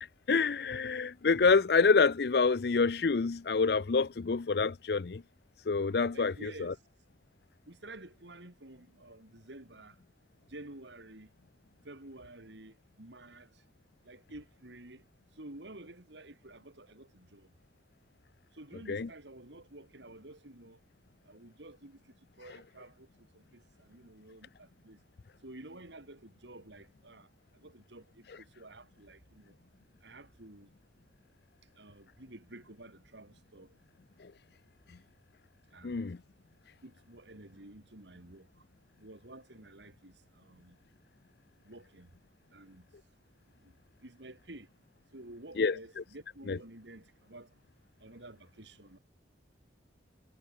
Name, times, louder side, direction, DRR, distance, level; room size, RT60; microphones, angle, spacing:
voice 1, 0.3-5.2 5.7-6.7 18.9-19.1 34.2-34.3 35.8-36.2 45.6-46.0 46.5-46.6, left 4 dB, 60° left, 0.5 m, -27 dB
voice 2, 6.1-6.7 7.7-9.9 10.5-11.3 11.8-13.5 14.0-15.0 15.4-17.5 18.6-20.8 21.3-22.0 22.4-23.1 23.3-25.0 25.4-27.3 27.5-29.5 30.0-30.7 31.8-33.7 35.7-36.0 36.8-38.5 39.0-40.8 41.6-42.1 42.5-42.9 43.6-43.7 44.0-44.7 45.1-47.5 48.0-49.0, right 2 dB, 75° right, 3.0 m, -51 dB
head